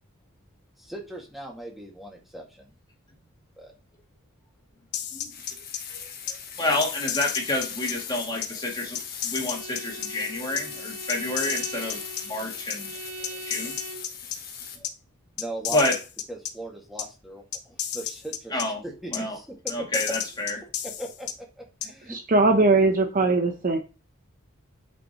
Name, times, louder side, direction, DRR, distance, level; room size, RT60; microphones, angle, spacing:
voice 1, 0.8-2.7 3.2-3.3 3.6-3.7 15.4-16.0 16.3-19.6 19.9-20.0 21.0-21.3 21.6-22.2, right 1 dB, ahead, -1 dB, 2.0 m, -39 dB
sound 1, 4.9-5.8 6.3-6.4 6.8-7.9 8.4-8.5 8.9-10.1 10.6-10.7 11.1-12.2 12.7-12.8 13.2-14.4 14.8-14.9 15.4-16.5 17.0-17.1 17.5-18.6 19.1-19.2 19.7-21.3 21.8-21.9, left 9 dB, 75° left, 0.9 m, -32 dB
sound 2, 5.3-14.8, left 7 dB, 45° left, 1.5 m, -39 dB
voice 2, 6.6-9.0 9.2-12.0 12.2-12.9 13.3-13.7 15.7-15.9 18.5-18.8 19.1-19.4 19.7-20.6, left 2 dB, 20° left, -1 dB, 2.4 m, -28 dB
Bowed string instrument, 9.5-14.1, right 2 dB, 80° right, 1.2 m, -41 dB
voice 3, 22.1-23.8, right 3 dB, 40° right, 5 dB, 0.9 m, -20 dB
8.6 x 5.4 x 3.0 m, 0.32 s
head